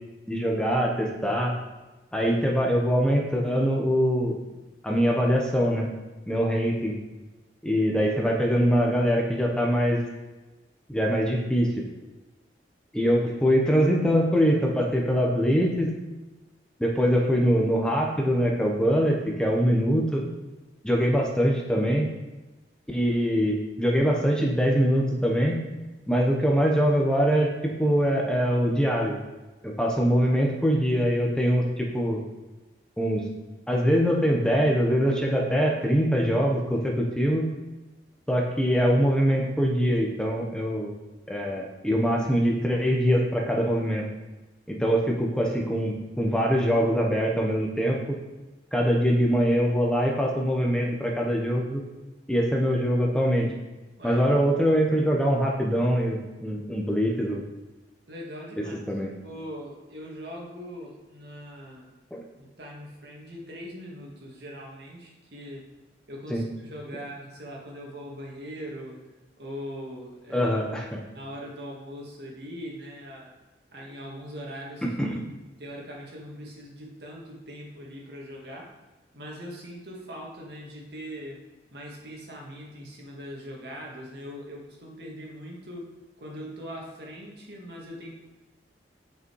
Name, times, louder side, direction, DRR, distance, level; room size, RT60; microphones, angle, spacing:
voice 1, 0.3-1.5 2.1-4.4 4.8-5.9 6.3-6.9 7.6-10.0 10.9-11.8 12.9-15.9 16.8-20.2 20.8-22.1 22.9-25.6 26.1-29.2 29.6-32.2 33.0-33.2 33.7-37.5 38.3-40.9 41.3-44.0 44.7-48.0 48.7-51.8 52.3-53.5 54.0-57.4 58.9-59.1 62.1-62.2 66.3-66.4 70.3-71.0 74.8-75.2, equal, 5° left, -1 dB, 1.0 m, -23 dB
voice 2, 58.1-58.8 59.2-61.9 62.4-65.7 66.1-69.0 69.4-70.5 71.1-73.3 73.7-75.1 75.6-78.8 79.1-81.4 81.7-85.8 86.2-88.1, equal, 65° right, -1 dB, 2.0 m, -41 dB
9.1 x 5.7 x 4.7 m, 1.1 s
head